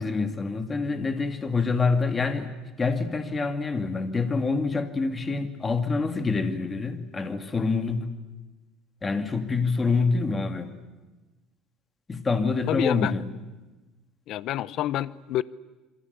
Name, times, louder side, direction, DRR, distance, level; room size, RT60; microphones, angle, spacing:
voice 1, 0.0-8.1 9.0-10.7 12.1-13.3, left 4 dB, 20° left, 8 dB, 2.4 m, -26 dB
voice 2, 12.7-13.1 14.3-15.4, left 13 dB, 55° left, 19 dB, 0.8 m, -28 dB
27.5 x 24.0 x 8.2 m, 1.2 s
cardioid pair, 140°, 0 cm